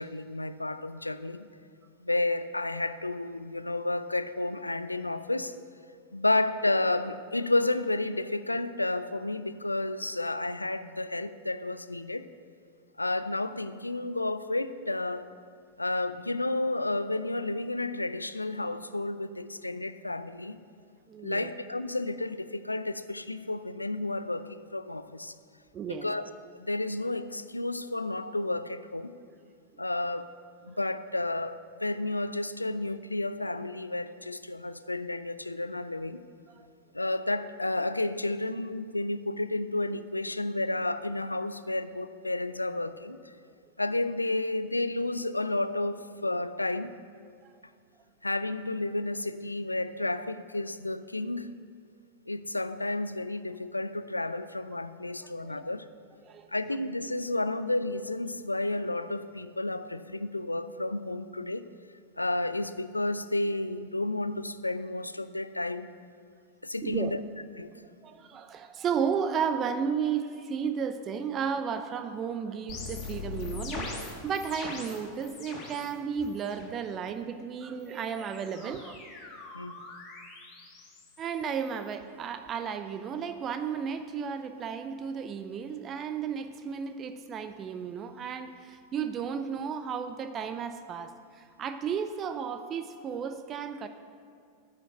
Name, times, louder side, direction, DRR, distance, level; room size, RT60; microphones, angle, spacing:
voice 1, 0.0-1.5 2.0-5.6 6.1-12.3 13.0-15.3 15.8-20.6 21.2-25.3 25.9-26.3 26.6-29.1 29.8-30.3 30.6-36.2 36.9-43.3 43.8-47.0 48.2-51.5 52.3-55.8 56.5-61.7 62.2-65.9 66.6-67.2 67.6-67.7 79.5-79.7, left 2 dB, 85° left, 14 dB, 0.4 m, -31 dB
voice 2, 21.1-21.5 25.7-26.1 36.5-36.7 47.4-47.5 55.2-55.6 56.2-56.5 66.8-67.2 68.0-79.0 81.2-93.9, right 7 dB, 30° right, 9 dB, 0.5 m, -33 dB
sound 1, 72.7-75.9 76.2-76.8 77.8-81.9, left 3 dB, 35° left, 2.1 m, -42 dB
9.5 x 6.3 x 7.9 m, 2.3 s
figure-of-eight pair, 90°, 0 cm